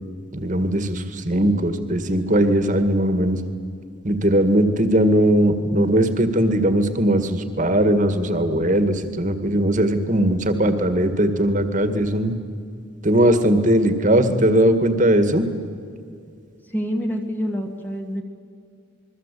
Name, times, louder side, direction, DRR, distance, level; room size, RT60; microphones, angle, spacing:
voice 1, 0.3-3.4 4.0-12.3 13.0-15.4, right 1 dB, 40° right, 9 dB, 2.0 m, -19 dB
voice 2, 16.6-18.2, equal, 10° left, 3 dB, 1.6 m, -27 dB
28.0 x 22.5 x 8.6 m, 2.3 s
head